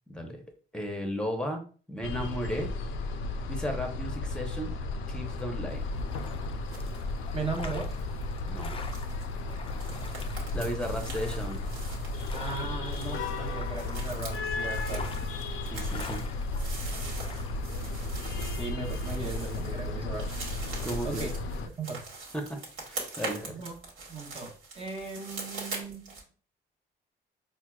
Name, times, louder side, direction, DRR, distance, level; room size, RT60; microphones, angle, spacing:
voice 1, 0.1-0.4 0.7-1.6 1.9-2.7 3.5-4.7 5.1-5.8 8.5-8.8 10.5-11.6 15.7-16.2 20.8-21.3 22.3-22.6 22.9-23.6, equal, 5° left, 4 dB, 0.8 m, -34 dB
sound 1, 2.0-21.7, left 2 dB, 85° left, 0.4 m, -34 dB
sound 2, 5.7-17.7, left 4 dB, 30° left, 0.4 m, -46 dB
sound 3, 6.6-7.1 7.4-26.2, right 3 dB, 75° right, 1.3 m, -43 dB
voice 2, 7.3-7.9 12.3-15.1 18.3-20.4 21.0-21.3 21.8-22.0 23.5-23.7 24.1-26.2, right 3 dB, 30° right, 1 dB, 0.8 m, -37 dB
4.4 x 2.1 x 2.3 m, 0.40 s
cardioid pair, 90°, 20 cm